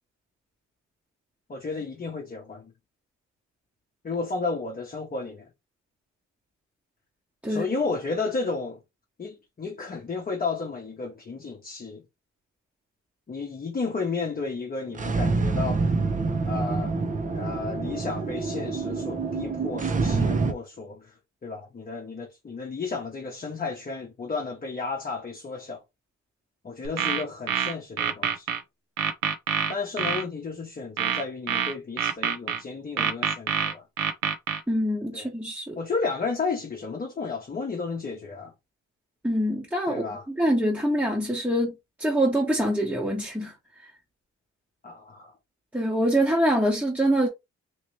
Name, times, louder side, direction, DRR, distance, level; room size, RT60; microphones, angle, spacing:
voice 1, 1.5-2.7 4.0-5.5 7.5-8.8 9.2-12.0 13.3-16.0 16.5-16.9 17.3-21.1 21.4-25.8 26.6-28.6 29.7-33.8 35.1-35.3 35.7-38.5 39.9-40.3 44.8-45.3, left 4 dB, 30° left, 0.9 m, -32 dB
sound 1, 14.9-20.5, right 3 dB, 25° right, 0.6 m, -26 dB
sound 2, 26.8-28.6 29.0-30.2 31.0-32.6 33.0-34.6, right 8 dB, 80° right, 0.8 m, -26 dB
voice 2, 34.7-35.8 39.2-43.5 45.7-47.3, right 1 dB, 5° right, 1.0 m, -25 dB
3.1 x 2.9 x 3.1 m
cardioid pair, 90°, 30 cm